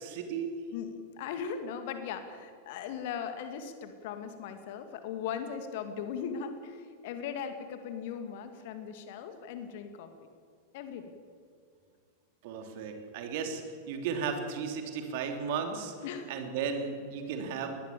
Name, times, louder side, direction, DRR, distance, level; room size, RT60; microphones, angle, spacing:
voice 1, 0.0-0.6 12.4-13.6 13.9-15.9 16.3-17.8, right 6 dB, 50° right, 5 dB, 3.4 m, -35 dB
voice 2, 0.7-10.1 10.7-11.1 16.0-16.3, left 7 dB, 50° left, 8 dB, 2.4 m, -38 dB
22.0 x 19.5 x 7.2 m, 2.1 s
figure-of-eight pair, 90°, 0 cm